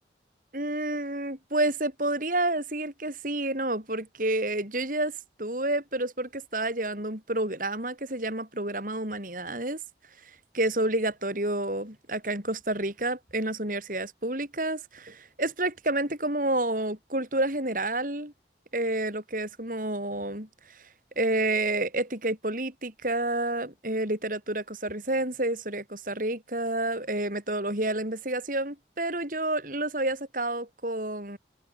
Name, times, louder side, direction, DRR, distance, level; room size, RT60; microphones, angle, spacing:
voice 1, 0.5-9.8 10.2-18.3 18.7-20.8 21.2-31.4, right 1 dB, 50° right, 6.9 m, -29 dB
head